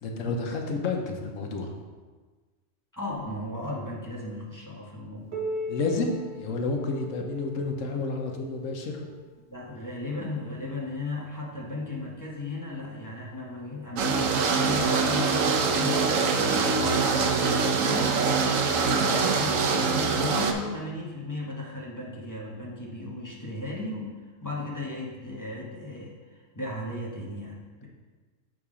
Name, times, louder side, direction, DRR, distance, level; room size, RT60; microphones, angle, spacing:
voice 1, 0.0-1.7 5.7-9.1, left 3 dB, 80° left, 2 dB, 1.2 m, -30 dB
voice 2, 2.9-5.4 9.5-18.2 18.8-27.9, left 2 dB, 15° left, -4 dB, 0.9 m, -36 dB
Piano, 5.3-10.6 11.5-11.6 12.1-12.2 13.0-13.1 14.1-14.2, equal, 55° right, 1.1 m, -39 dB
sound 1, 14.0-20.5, right 4 dB, 90° right, 1.1 m, -24 dB
7.0 x 3.8 x 4.9 m, 1.4 s
omnidirectional pair, 1.3 m